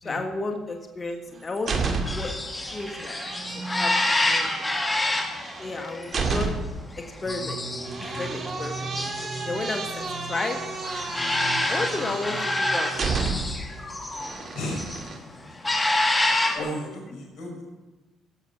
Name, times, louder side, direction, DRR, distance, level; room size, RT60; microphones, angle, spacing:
voice 1, 0.0-2.3 2.7-3.2 3.5-4.5 5.6-6.6 7.2-7.6 8.2-9.1 9.4-10.6 11.7-13.2 16.5-16.6, left 3 dB, 35° left, 4 dB, 1.6 m, -32 dB
sound 1, 1.1-2.4 2.7-6.8 7.8-13.7 14.1-15.2, right 4 dB, 45° right, 2.1 m, -32 dB
sound 2, 2.0-14.4 14.6-15.1 15.5-16.6, left 2 dB, 20° left, 2.0 m, -28 dB
sound 3, 3.3-4.4 7.2-14.3, right 4 dB, 30° right, 1.7 m, -40 dB
voice 2, 14.3-15.5 16.0-16.2 16.5-17.6, equal, 60° left, -3 dB, 5.2 m, -36 dB
16.0 x 7.1 x 6.0 m, 1.2 s
supercardioid pair, 60°, 0 cm